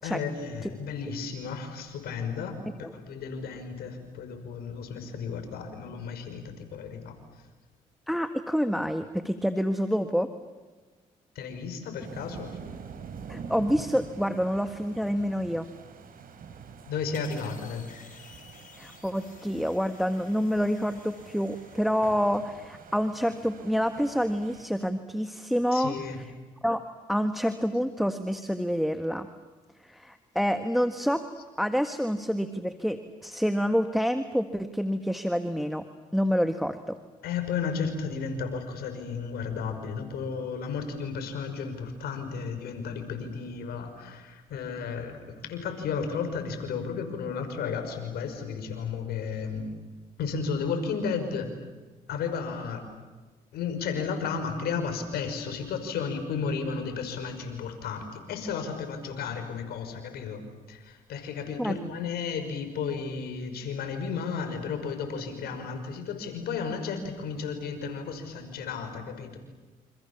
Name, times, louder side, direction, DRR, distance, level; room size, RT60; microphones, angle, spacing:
voice 1, 0.0-2.6 2.9-7.1 11.4-12.5 16.9-17.8 25.7-26.2 37.2-49.7 50.2-51.5 52.1-52.8 53.5-60.4 60.7-69.4, left 5 dB, 80° left, 6 dB, 5.6 m, -33 dB
voice 2, 8.1-10.3 13.3-15.7 18.8-25.9 26.6-29.3 29.8-31.3 31.6-35.9 36.1-37.0 61.6-61.8, equal, ahead, 8 dB, 1.7 m, -27 dB
sound 1, 12.0-24.7, right 6 dB, 65° right, 4.0 m, -46 dB
sound 2, 17.1-22.3, left 6 dB, 55° left, 5.8 m, -54 dB
29.0 x 28.0 x 7.3 m, 1.3 s
supercardioid pair, 65°, 16 cm